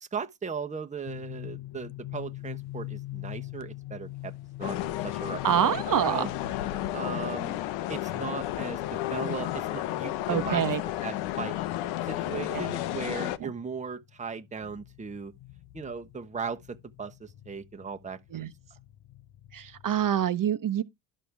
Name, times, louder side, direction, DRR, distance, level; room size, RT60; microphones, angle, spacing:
voice 1, 0.0-4.3 4.6-4.8 5.0-6.3 6.9-7.6 7.9-10.6 11.0-11.6 12.0-15.3 15.7-18.5, right 5 dB, 15° right, 1.0 m, -37 dB
sound 1, 1.0-20.3, left 16 dB, 55° left, 0.9 m, -45 dB
sound 2, 4.6-13.4, left 14 dB, 80° left, 1.0 m, -32 dB
voice 2, 5.4-6.3 10.3-10.8 12.5-12.6 13.4-13.5 18.3-18.5 19.5-20.8, right 9 dB, 45° right, 1.1 m, -26 dB
11.0 x 6.4 x 3.5 m
supercardioid pair, 80°, 46 cm